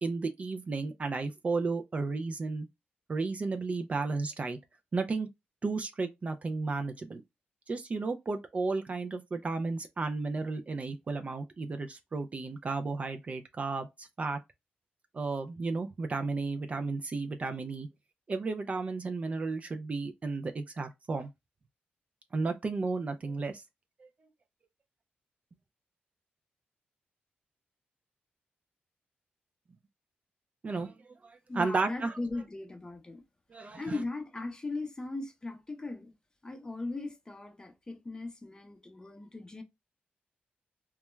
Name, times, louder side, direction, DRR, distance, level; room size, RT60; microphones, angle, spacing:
voice 1, 0.0-2.7 3.1-4.6 4.9-5.3 5.6-7.2 7.7-14.4 15.1-17.9 18.3-21.3 22.3-23.6 24.0-24.1 30.6-32.1 33.5-34.0, right 3 dB, 35° right, 0.3 m, -33 dB
voice 2, 31.5-33.2 33.8-36.1 36.4-39.6, left 2 dB, 20° left, 0.6 m, -38 dB
2.2 x 2.2 x 3.0 m
cardioid pair, 85°, 4 cm